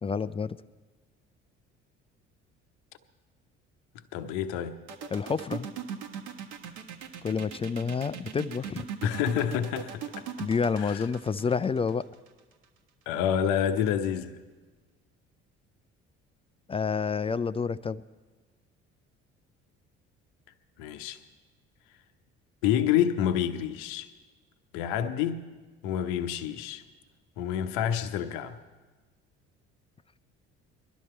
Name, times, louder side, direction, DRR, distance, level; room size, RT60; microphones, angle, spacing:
voice 1, 0.0-0.6 5.1-5.7 7.2-8.9 10.4-12.1 16.7-18.0, left 5 dB, 20° left, 0.3 m, -29 dB
voice 2, 4.1-4.8 9.0-10.2 10.8-11.0 13.1-14.4 20.8-21.2 22.6-24.1 24.7-25.5 25.8-26.8 27.4-28.6, left 9 dB, 65° left, 0.8 m, -28 dB
sound 1, 4.9-12.6, right 8 dB, 70° right, 1.5 m, -39 dB
21.0 x 12.5 x 4.4 m
figure-of-eight pair, 55°, 34 cm